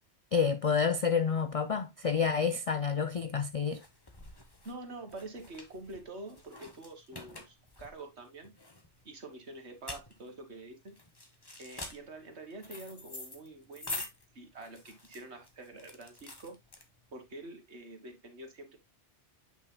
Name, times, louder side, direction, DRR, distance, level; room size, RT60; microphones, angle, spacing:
voice 1, 0.3-3.8, left 6 dB, 65° left, 0.3 m, -29 dB
sound 1, 3.7-17.3, left 2 dB, 20° left, 1.1 m, -46 dB
voice 2, 4.7-8.5 9.1-11.0 11.6-14.0 14.3-16.6 17.1-18.8, right 2 dB, 70° right, 1.8 m, -46 dB
8.2 x 6.4 x 2.2 m
omnidirectional pair, 1.2 m